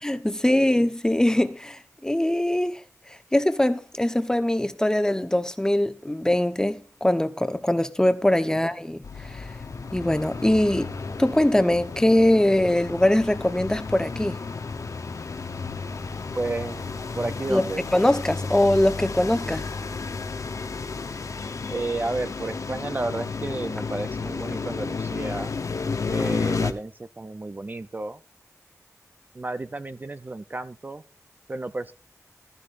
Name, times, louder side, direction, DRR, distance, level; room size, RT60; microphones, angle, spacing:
voice 1, 0.0-2.8 3.3-9.0 9.4-9.5 9.9-10.9 11.2-14.4 17.5-17.6 17.9-19.6, left 1 dB, 10° left, 1.0 m, -22 dB
sound 1, 9.0-26.7, left 4 dB, 65° left, 0.9 m, -32 dB
voice 2, 16.4-17.8 21.7-25.5 26.1-28.2 29.3-31.0 31.5-31.9, right 2 dB, 30° right, 0.5 m, -32 dB
14.5 x 12.5 x 2.6 m
wide cardioid pair, 100°, 6 cm